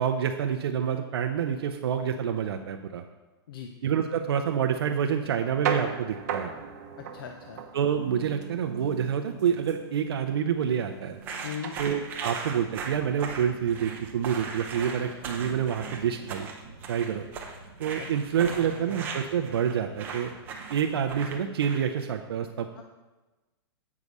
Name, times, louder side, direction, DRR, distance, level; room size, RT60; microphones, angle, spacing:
voice 1, 0.0-3.0 3.8-6.5 7.7-11.2 11.8-16.5 16.9-17.3 17.8-20.3 20.7-22.8, right 8 dB, 70° right, 4 dB, 0.6 m, -28 dB
sound 1, 5.2-21.4, right 6 dB, 40° right, 0.8 m, -40 dB
voice 2, 7.0-7.6 11.4-11.7 17.9-18.1 18.4-19.0 22.8-22.9, left 8 dB, 60° left, 4 dB, 0.6 m, -40 dB
sound 2, 11.2-22.0, right 5 dB, 15° right, 0.6 m, -38 dB
8.4 x 4.8 x 5.3 m, 1.2 s
hypercardioid pair, 170°, 13 cm